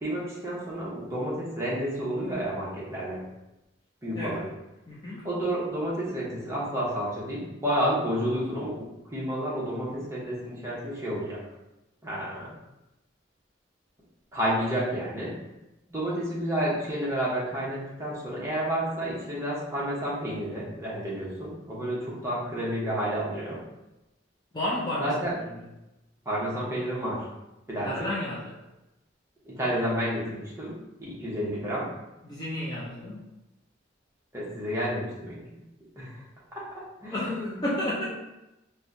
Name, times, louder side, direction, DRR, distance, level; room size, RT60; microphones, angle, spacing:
voice 1, 0.0-3.2 4.0-4.4 5.2-8.8 9.1-11.4 12.0-12.5 14.3-15.4 15.9-23.6 25.0-25.3 26.2-27.3 27.7-27.9 29.4-30.7 31.0-31.9 34.3-35.4 36.0-36.2 36.7-37.6 38.0-38.1, equal, 15° right, -7 dB, 0.9 m, -30 dB
voice 2, 4.9-5.3 24.5-25.1 25.5-25.6 27.8-28.6 32.2-33.3 37.1-38.1, left 1 dB, 20° left, -7 dB, 0.5 m, -32 dB
4.3 x 2.2 x 2.6 m, 0.95 s
head